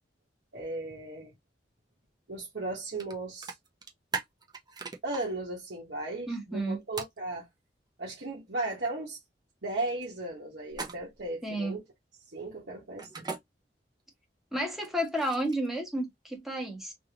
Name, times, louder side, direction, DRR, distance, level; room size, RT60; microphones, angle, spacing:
voice 1, 0.5-1.3 2.3-3.5 5.0-7.5 8.0-9.2 9.6-11.8 12.3-13.3, right 2 dB, 65° right, 1.0 m, -36 dB
sound 1, 3.0-3.1 3.4-5.2 7.0-7.2 10.7-11.3 13.0-13.4 14.8-15.7, right 4 dB, 25° right, 0.7 m, -38 dB
voice 2, 6.3-6.8 11.4-11.8 14.5-16.9, right 1 dB, ahead, 1.3 m, -31 dB
3.4 x 2.5 x 2.8 m
head